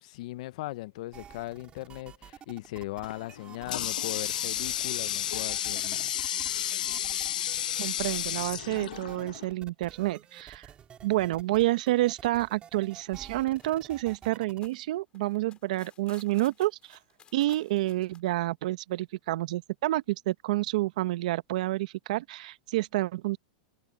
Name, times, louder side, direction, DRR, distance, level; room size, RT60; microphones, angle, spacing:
voice 1, 0.0-6.1, left 18 dB, 60° left, 0.8 m, -39 dB
sound 1, 1.1-14.7, right 8 dB, 25° right, 4.5 m, -50 dB
Water tap faucet, 3.0-9.5, left 11 dB, 80° left, 1.1 m, -32 dB
voice 2, 7.8-10.7 11.0-17.0 17.3-23.4, right 17 dB, 65° right, 1.1 m, -29 dB
sound 2, 13.1-13.2 13.6-18.2, left 8 dB, 25° left, 5.0 m, -56 dB
hypercardioid pair, 130°, 4 cm